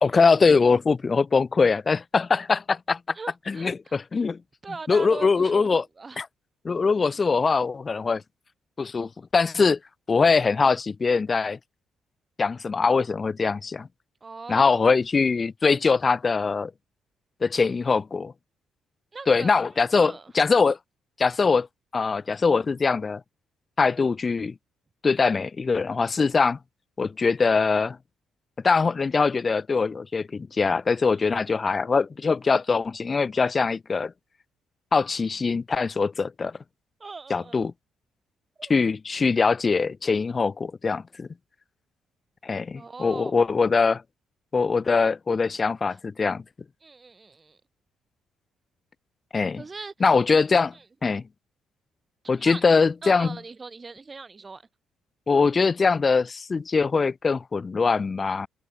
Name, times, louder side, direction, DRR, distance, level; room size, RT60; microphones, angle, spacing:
voice 1, 0.0-3.0 3.5-4.4 4.9-5.8 6.2-6.3 6.6-8.2 8.8-9.8 10.1-11.6 12.4-13.9 14.5-16.7 17.4-18.3 19.3-20.8 21.2-21.7 21.9-23.2 23.8-24.5 25.0-26.6 27.0-28.0 28.6-34.1 34.9-36.5 37.3-37.7 38.7-41.3 42.4-44.0 44.5-46.4 49.3-49.6 50.0-50.7 51.0-51.2 52.3-53.4 55.3-58.5, left 4 dB, 35° left, 1.0 m, -22 dB
voice 2, 3.1-4.0 4.6-5.7 6.0-6.2 10.2-10.4 14.2-14.9 19.1-19.5 19.9-20.3 31.2-31.4 37.0-37.7 38.6-38.7 42.7-43.4 46.8-47.6 49.6-49.9 50.7-50.8 52.4-52.6 53.0-54.7, right 4 dB, 30° right, 3.1 m, -40 dB
cardioid pair, 90°, 0 cm